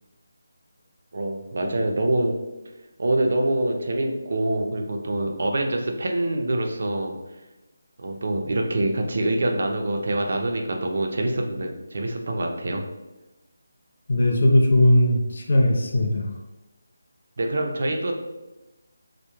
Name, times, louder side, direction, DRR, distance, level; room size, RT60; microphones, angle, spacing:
voice 1, 1.1-2.4 3.0-7.2 8.0-12.9 17.4-18.2, right 1 dB, 60° right, 3 dB, 0.4 m, -25 dB
voice 2, 14.1-16.3, left 1 dB, 60° left, 1 dB, 0.4 m, -19 dB
2.2 x 2.0 x 2.9 m, 1.0 s
figure-of-eight pair, 165°, 0 cm